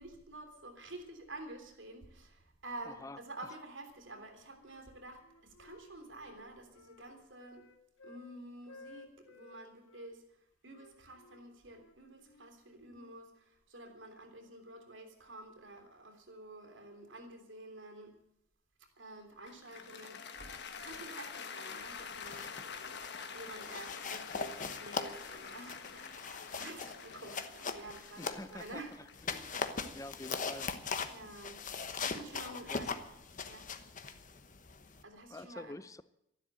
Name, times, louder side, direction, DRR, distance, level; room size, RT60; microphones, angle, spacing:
voice 1, 0.0-7.6 8.0-10.2 10.6-18.2 19.0-22.5 23.3-28.9 29.3-29.5 31.1-31.6 32.0-32.9 33.4-33.7 35.0-35.7, right 2 dB, 75° right, 4 dB, 3.2 m, -49 dB
voice 2, 2.8-3.2 28.2-29.5 29.9-30.8 31.2-31.3 32.6-32.9 35.3-36.1, left 2 dB, 15° left, 15 dB, 0.5 m, -47 dB
Wind instrument woodwind instrument, 4.0-4.9 5.2-8.3 8.6-10.1 10.7-13.2, left 2 dB, 90° left, 1.6 m, -58 dB
Cheering / Applause, 19.5-31.7, left 6 dB, 60° left, 1.3 m, -47 dB
sound 1, 22.0-22.6 22.9-23.2 23.6-28.7 29.1-35.0, left 5 dB, 45° left, 1.1 m, -40 dB
13.0 x 11.5 x 9.0 m, 0.81 s
head